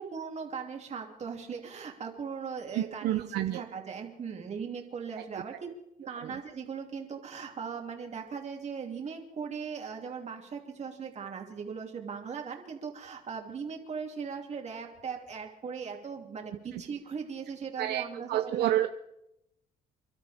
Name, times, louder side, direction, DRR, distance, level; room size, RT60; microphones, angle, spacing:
voice 1, 0.0-5.5 6.0-18.7, right 6 dB, 40° right, 2 dB, 2.9 m, -39 dB
voice 2, 2.7-3.6 5.2-5.3 6.2-6.4 16.7-16.8 17.8-18.9, right 13 dB, 75° right, 8 dB, 0.7 m, -29 dB
29.0 x 12.5 x 3.6 m, 0.84 s
cardioid pair, 110°, 17 cm